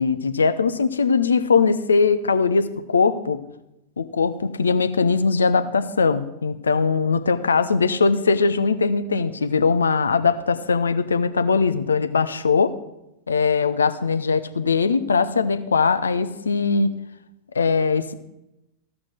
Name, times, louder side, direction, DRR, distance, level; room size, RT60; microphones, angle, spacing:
voice 1, 0.0-3.4 4.0-12.7 13.3-16.9 17.5-18.1, left 5 dB, 75° left, 11 dB, 0.7 m, -20 dB
14.5 x 6.2 x 6.4 m, 0.89 s
figure-of-eight pair, 90°, 0 cm